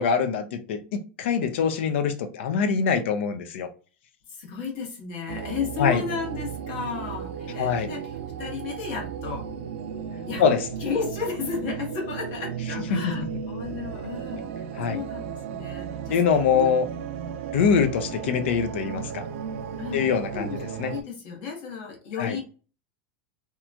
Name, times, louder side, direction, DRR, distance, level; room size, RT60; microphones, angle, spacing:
voice 1, 0.0-3.7 5.8-6.0 7.6-7.9 10.4-10.7 12.9-13.3 14.8-15.0 16.1-16.9 17.5-19.2 19.9-20.9 22.2-22.4, left 6 dB, 75° left, 0.6 m, -24 dB
voice 2, 4.3-9.5 10.3-10.5 10.8-14.5 14.8-16.2 16.5-16.7 19.8-22.4, left 5 dB, 55° left, 1.2 m, -33 dB
sound 1, 5.3-21.0, right 7 dB, 80° right, 0.4 m, -35 dB
2.9 x 2.3 x 2.5 m
supercardioid pair, 150°, 6 cm